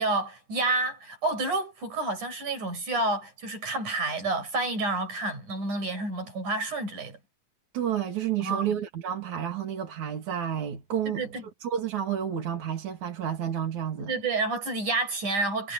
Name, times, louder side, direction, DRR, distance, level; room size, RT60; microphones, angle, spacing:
voice 1, 0.0-7.2 8.4-8.8 11.1-11.4 14.0-15.7, right 2 dB, 90° right, 8.8 m, -29 dB
voice 2, 7.7-11.3 11.6-14.1, right 9 dB, 75° right, 4.0 m, -30 dB
omnidirectional pair, 3.4 m